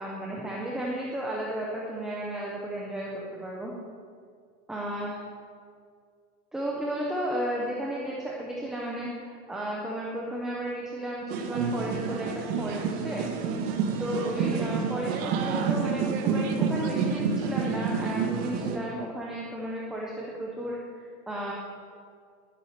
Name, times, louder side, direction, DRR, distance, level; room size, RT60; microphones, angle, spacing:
voice 1, 0.0-3.7 4.7-5.2 6.5-13.3 13.7-21.5, right 1 dB, ahead, -4 dB, 0.4 m, -34 dB
sound 1, 11.3-18.8, right 5 dB, 40° right, 1.7 m, -28 dB
11.0 x 10.5 x 9.3 m, 2.2 s
supercardioid pair, 155°, 46 cm